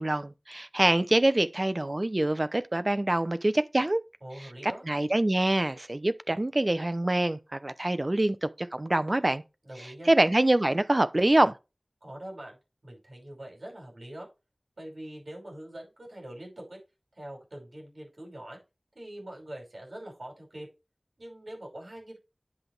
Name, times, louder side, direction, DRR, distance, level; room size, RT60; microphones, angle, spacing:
voice 1, 0.0-4.0 4.6-9.4 10.1-11.6, right 1 dB, 45° right, 0.7 m, -25 dB
voice 2, 4.2-4.9 9.6-10.1 12.0-12.6 12.8-14.3 14.8-16.8 17.1-18.6 18.9-20.7 21.2-22.2, right 1 dB, 80° right, 5.8 m, -43 dB
10.5 x 6.0 x 3.4 m
wide cardioid pair, 40°, 0 cm